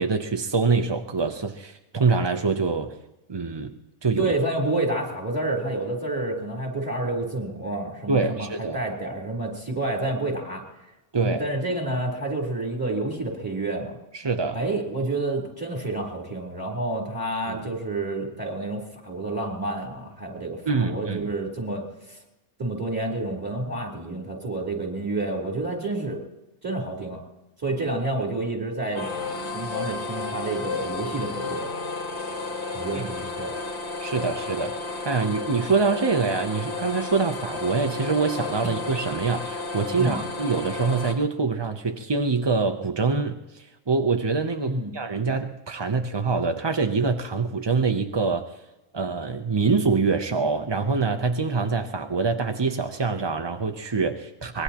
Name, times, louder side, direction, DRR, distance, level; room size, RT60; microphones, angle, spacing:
voice 1, 0.0-2.9 3.3-3.7 4.0-4.3 8.1-8.8 11.1-11.4 14.1-14.6 17.5-17.6 20.7-21.3 32.9-33.0 34.0-48.5 48.9-54.6, right 4 dB, 40° right, 5 dB, 0.3 m, -25 dB
voice 2, 4.2-10.6 11.2-14.0 14.5-22.2 22.6-26.2 26.6-27.2 27.6-29.1 29.5-31.7 32.7-33.5 34.2-34.3 35.2-35.3 40.0-40.2 44.6-44.9, right 2 dB, 15° right, -1 dB, 3.6 m, -29 dB
sound 1, 28.9-41.1, left 3 dB, 85° left, 2.3 m, -32 dB
24.0 x 20.5 x 3.0 m, 0.99 s
omnidirectional pair, 1.6 m